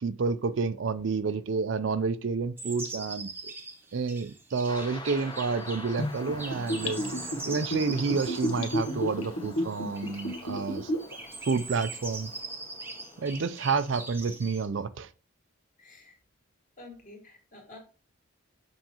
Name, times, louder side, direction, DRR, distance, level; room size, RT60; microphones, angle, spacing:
voice 1, 0.0-3.5 3.9-7.0 7.5-10.9 11.5-12.3 13.2-15.1, right 4 dB, 60° right, 0.4 m, -29 dB
sound 1, 2.6-14.7, right 3 dB, 10° right, 0.9 m, -42 dB
sound 2, 4.7-14.0, left 2 dB, 20° left, 0.8 m, -46 dB
Gurgling / Bathtub (filling or washing), 6.0-11.1 11.5-11.6, equal, 85° left, 1.5 m, -31 dB
voice 2, 15.8-16.2 16.8-17.8, left 2 dB, 35° left, 1.9 m, -49 dB
7.8 x 5.7 x 2.9 m
head